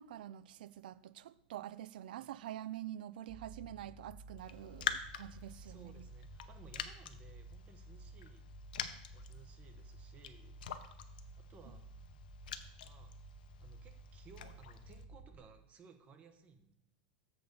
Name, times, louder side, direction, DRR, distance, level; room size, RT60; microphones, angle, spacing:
voice 1, 0.0-6.1, right 12 dB, 80° right, 0.4 m, -47 dB
sound 1, 3.3-15.4, right 2 dB, 5° right, 2.3 m, -53 dB
Raindrop, 4.4-15.0, left 9 dB, 85° left, 0.7 m, -46 dB
voice 2, 5.6-8.5 9.1-11.9 12.8-13.1 13.6-16.7, right 5 dB, 30° right, 1.1 m, -60 dB
7.6 x 4.0 x 6.7 m
supercardioid pair, 130°, 5 cm